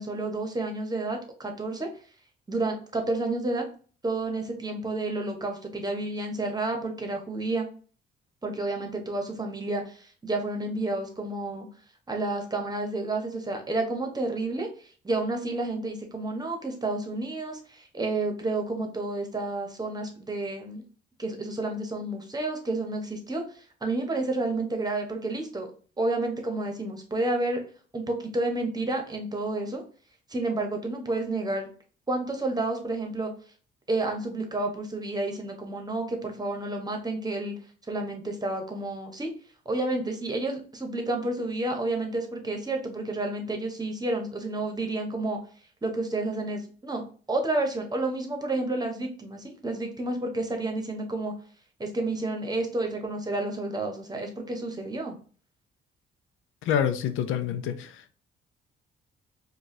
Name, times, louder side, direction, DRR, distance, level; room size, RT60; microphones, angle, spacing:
voice 1, 0.0-1.9 2.5-3.7 4.0-7.7 8.4-11.7 12.1-14.7 15.0-20.8 21.2-25.7 26.0-27.6 27.9-29.8 30.3-31.7 32.1-33.3 33.9-37.6 37.9-39.3 39.6-45.4 45.8-47.0 47.3-51.3 51.8-55.2, right 2 dB, 20° right, 1.0 m, -30 dB
voice 2, 56.6-58.1, left 9 dB, 85° left, 0.5 m, -27 dB
4.7 x 2.4 x 2.7 m
cardioid pair, 90°, 20 cm